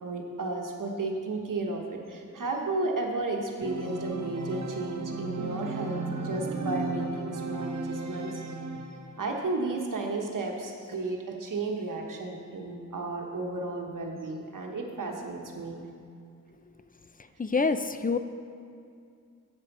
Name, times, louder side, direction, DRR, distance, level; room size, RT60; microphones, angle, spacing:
voice 1, 0.0-8.4 9.2-15.8, right 2 dB, 80° right, 1 dB, 1.2 m, -33 dB
Organ, 3.6-9.3, right 3 dB, 60° right, 0.8 m, -35 dB
voice 2, 17.4-18.2, left 4 dB, 25° left, 10 dB, 0.5 m, -26 dB
9.0 x 7.7 x 6.0 m, 2.4 s
wide cardioid pair, 60°, 31 cm